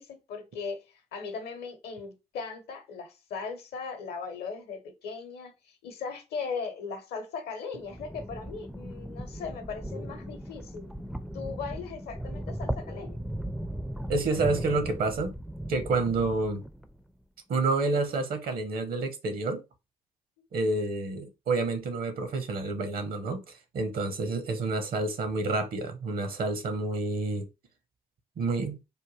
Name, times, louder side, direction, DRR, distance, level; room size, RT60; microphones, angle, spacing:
voice 1, 0.0-10.9 11.3-13.2 20.4-20.9, left 5 dB, 70° left, 0.8 m, -38 dB
sound 1, 7.8-17.0, equal, ahead, 0.4 m, -37 dB
voice 2, 14.1-15.3 15.7-16.6 17.5-19.6 20.5-23.4 23.7-27.5 28.4-28.8, right 3 dB, 60° right, 0.9 m, -29 dB
3.5 x 2.2 x 3.0 m
hypercardioid pair, 40°, 17 cm